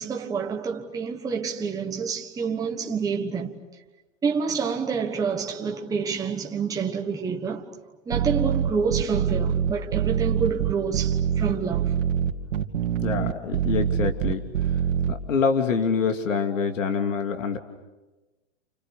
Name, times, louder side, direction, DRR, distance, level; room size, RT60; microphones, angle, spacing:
voice 1, 0.0-3.6 4.2-7.7 8.1-11.9, right 6 dB, 10° right, 1.3 m, -28 dB
sound 1, 8.1-15.1, right 9 dB, 70° right, 2.5 m, -24 dB
voice 2, 13.0-14.4 15.1-17.6, left 5 dB, 80° left, 2.9 m, -25 dB
29.5 x 29.5 x 6.7 m
hypercardioid pair, 145°, 38 cm